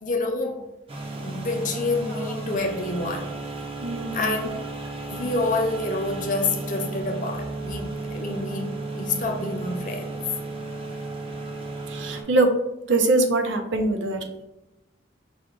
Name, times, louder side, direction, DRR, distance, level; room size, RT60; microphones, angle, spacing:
voice 1, 0.0-0.6 1.2-3.4 4.1-4.6 5.1-8.7 8.9-10.2, left 2 dB, 40° left, 3 dB, 0.6 m, -28 dB
sound 1, 0.9-12.2, right 2 dB, 30° right, 0.6 m, -34 dB
voice 2, 3.8-4.3 11.9-12.5 12.8-14.3, right 2 dB, 70° right, 5 dB, 0.6 m, -23 dB
5.1 x 2.3 x 3.7 m, 0.94 s
head